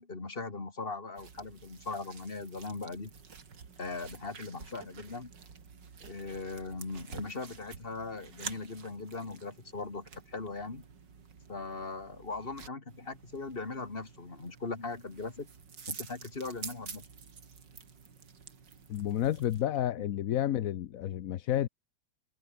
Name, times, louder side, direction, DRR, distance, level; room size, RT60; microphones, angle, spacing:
voice 1, 0.0-3.1 3.8-5.3 6.0-10.8 11.5-15.5 15.9-17.0, left 3 dB, 25° left, 2.6 m, -39 dB
sound 1, 1.2-19.6, right 6 dB, 60° right, 3.0 m, -49 dB
voice 2, 18.9-21.7, left 12 dB, 65° left, 0.8 m, -30 dB
omnidirectional pair, 2.2 m